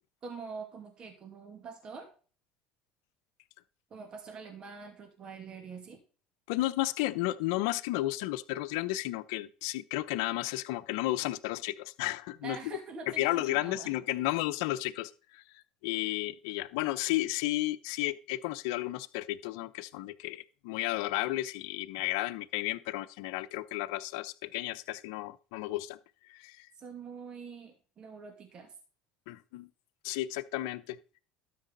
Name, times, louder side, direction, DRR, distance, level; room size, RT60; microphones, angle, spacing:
voice 1, 0.2-2.1 3.9-6.0 12.4-13.9 14.2-14.4 26.8-28.7, right 5 dB, 40° right, 2.4 m, -45 dB
voice 2, 6.5-12.6 13.2-15.4 15.8-26.0 26.3-26.7 29.3-29.7 30.0-31.0, left 17 dB, 80° left, 0.8 m, -33 dB
12.5 x 6.1 x 4.0 m
supercardioid pair, 105°, 2 cm